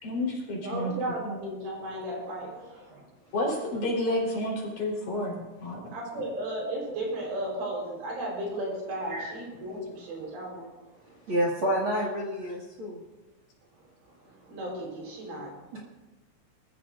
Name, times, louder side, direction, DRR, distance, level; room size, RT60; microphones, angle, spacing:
voice 1, 0.0-0.9 1.2-1.4 3.3-5.8, left 1 dB, 40° left, -3 dB, 5.0 m, -30 dB
voice 2, 0.6-3.1 5.9-11.2 13.7-15.7, right 1 dB, 65° right, -2 dB, 6.3 m, -35 dB
voice 3, 11.3-13.0 15.7-15.8, equal, 45° right, -3 dB, 1.7 m, -29 dB
26.0 x 14.5 x 2.6 m, 1.1 s
omnidirectional pair, 5.7 m